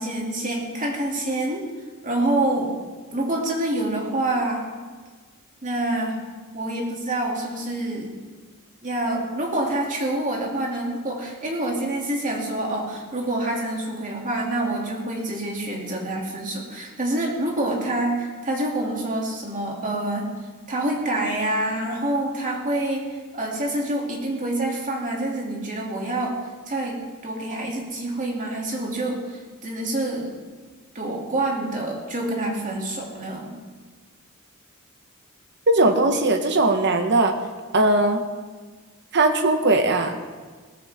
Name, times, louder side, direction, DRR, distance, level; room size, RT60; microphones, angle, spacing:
voice 1, 0.0-1.6 2.0-2.7 3.1-4.6 5.6-6.2 6.5-8.1 8.8-20.3 20.7-26.4 26.7-30.3 30.9-33.5, right 1 dB, 35° right, -1 dB, 2.7 m, -27 dB
voice 2, 35.7-37.3 37.7-38.2 39.1-40.2, right 2 dB, 55° right, 5 dB, 1.3 m, -19 dB
17.5 x 14.0 x 3.7 m, 1.4 s
head